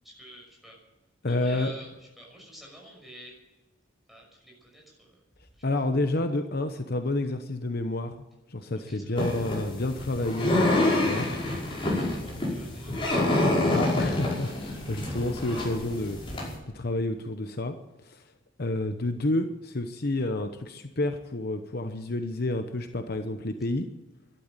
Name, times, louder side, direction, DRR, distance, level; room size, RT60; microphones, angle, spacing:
voice 1, 0.2-0.8 1.3-1.9 2.2-3.3 4.1-5.1 8.9-9.3 11.9-13.3, equal, ahead, -1 dB, 6.0 m, -48 dB
voice 2, 1.2-1.7 5.6-8.2 8.5-11.4 11.8-12.0 13.7-16.2 16.7-17.8 18.0-18.2 18.6-23.9, left 2 dB, 55° left, 7 dB, 1.0 m, -29 dB
sound 1, 9.2-16.5, left 1 dB, 25° left, 5.5 m, -27 dB
12.5 x 12.0 x 8.9 m, 1.1 s
head